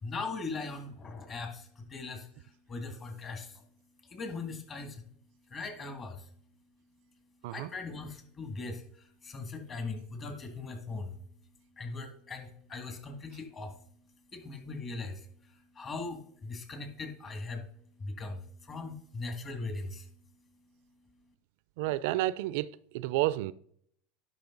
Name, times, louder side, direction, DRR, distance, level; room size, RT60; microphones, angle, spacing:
voice 1, 0.0-3.6 4.0-5.0 5.5-6.3 7.5-11.2 11.8-13.8 14.3-17.7 18.0-20.1, left 3 dB, 30° left, 2.1 m, -40 dB
voice 2, 21.8-23.5, right 16 dB, 70° right, 0.4 m, -30 dB
10.5 x 5.4 x 3.9 m
supercardioid pair, 110°, 0 cm